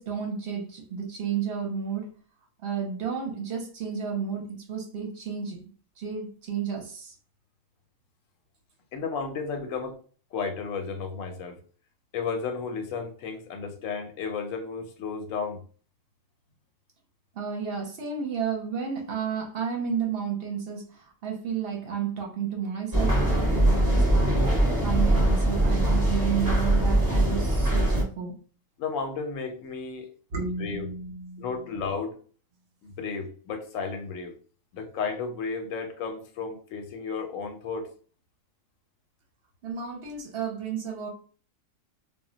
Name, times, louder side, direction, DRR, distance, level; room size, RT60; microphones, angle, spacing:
voice 1, 0.0-2.1 2.6-5.7 6.0-7.1 17.3-28.3 30.3-31.5 39.6-41.1, right 6 dB, 60° right, 0.8 m, -32 dB
voice 2, 8.9-10.0 10.3-11.6 12.1-15.6 28.8-30.1 30.4-30.9 31.4-32.2 32.8-34.3 34.7-37.9, left 5 dB, 90° left, 1.0 m, -33 dB
sound 1, 22.9-28.0, right 1 dB, 20° right, 0.6 m, -22 dB
2.2 x 2.1 x 3.7 m
omnidirectional pair, 1.3 m